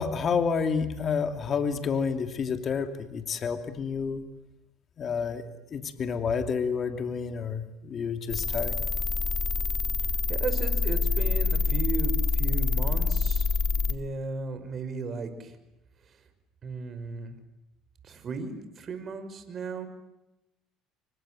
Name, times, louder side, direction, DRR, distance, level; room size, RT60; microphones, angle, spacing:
voice 1, 0.0-4.2 5.0-5.4 5.7-8.8, left 6 dB, 40° left, 8 dB, 2.9 m, -29 dB
sound 1, 8.3-13.9, left 4 dB, 25° left, 2.2 m, -26 dB
voice 2, 10.3-13.5 13.7-15.6 16.6-17.3 18.0-19.9, right 4 dB, 40° right, 8 dB, 5.8 m, -36 dB
29.0 x 25.0 x 7.8 m, 0.93 s
supercardioid pair, 100°, 0 cm